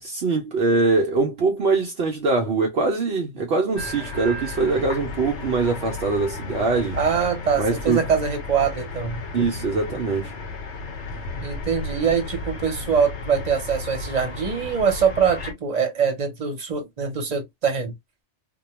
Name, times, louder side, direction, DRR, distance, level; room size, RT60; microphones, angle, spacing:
voice 1, 0.0-7.0 7.5-8.1 9.3-10.3, right 3 dB, 65° right, 0.8 m, -23 dB
sound 1, 3.7-15.5, left 3 dB, 80° left, 0.9 m, -33 dB
voice 2, 7.0-9.2 11.4-17.9, right 6 dB, 40° right, 0.9 m, -23 dB
2.2 x 2.2 x 2.9 m
omnidirectional pair, 1.2 m